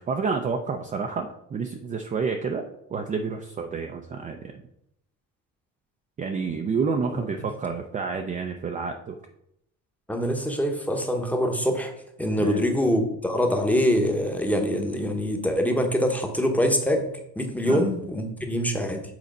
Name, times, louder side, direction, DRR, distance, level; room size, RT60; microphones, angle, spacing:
voice 1, 0.0-2.6 2.9-4.6 6.2-9.2 12.4-12.6 17.6-17.9, right 5 dB, 25° right, 4 dB, 0.5 m, -29 dB
voice 2, 10.1-11.9 12.2-17.1 17.4-19.0, equal, 5° left, 4 dB, 0.9 m, -24 dB
7.7 x 4.0 x 5.3 m, 0.77 s
cardioid pair, 145°, 34 cm